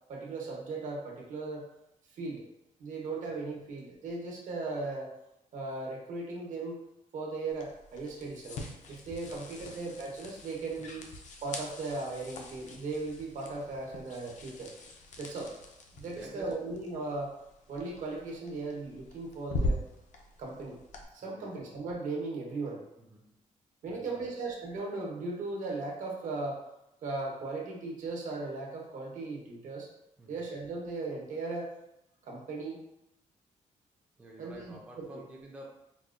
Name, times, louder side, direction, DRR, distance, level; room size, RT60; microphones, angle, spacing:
voice 1, 0.1-1.6 2.1-2.4 2.8-5.1 5.5-6.8 7.1-11.0 11.4-14.7 15.2-15.5 15.9-17.3 17.7-19.8 20.4-20.8 21.1-22.8 23.8-26.6 27.0-29.9 30.3-31.7 32.2-32.8 34.4-35.2, right 3 dB, 70° right, -2 dB, 0.8 m, -37 dB
sound 1, 7.5-21.0, left 1 dB, 65° left, 0.5 m, -41 dB
voice 2, 9.3-9.8 10.8-11.0 15.1-15.5 16.1-16.7 21.2-21.5 23.0-23.4 23.9-24.3 30.2-30.5 34.2-35.7, right 1 dB, 10° right, -2 dB, 0.4 m, -50 dB
4.0 x 2.1 x 2.4 m, 0.85 s
wide cardioid pair, 180°, 13 cm